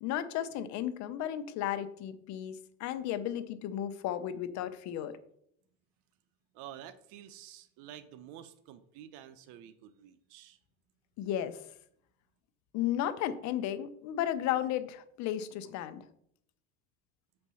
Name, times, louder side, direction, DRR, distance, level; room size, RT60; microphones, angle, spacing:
voice 1, 0.0-5.2 11.2-11.6 12.7-16.0, left 11 dB, 60° left, 12 dB, 0.8 m, -34 dB
voice 2, 6.5-10.6, right 11 dB, 70° right, 10 dB, 0.7 m, -50 dB
7.3 x 4.4 x 5.6 m, 0.70 s
supercardioid pair, 120°, 32 cm